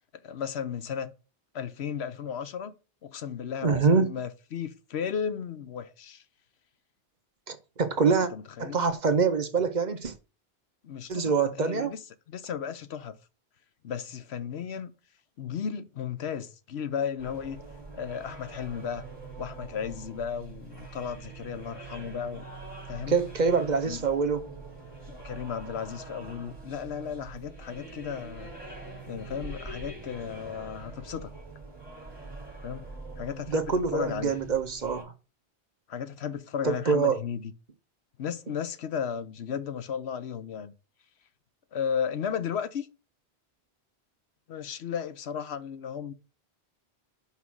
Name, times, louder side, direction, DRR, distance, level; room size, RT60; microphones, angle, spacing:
voice 1, 0.2-1.1 1.5-2.7 3.0-6.2 8.3-8.8 10.8-11.3 11.6-12.0 12.3-13.2 13.8-14.9 15.4-17.6 17.9-19.0 19.4-22.4 22.9-23.2 23.9-24.0 25.1-28.5 29.1-31.3 32.6-32.9 33.2-33.7 33.9-34.4 35.9-37.5 38.2-40.7 41.7-42.9 44.5-46.1, left 7 dB, 80° left, 1.0 m, -34 dB
voice 2, 3.6-4.1 7.5-8.3 8.6-10.1 11.1-11.9 23.1-24.5 33.5-35.1 36.6-37.2, right 5 dB, 45° right, 0.9 m, -25 dB
sound 1, 17.2-35.0, right 3 dB, 30° left, 3.3 m, -44 dB
5.8 x 4.7 x 6.0 m
omnidirectional pair, 1.1 m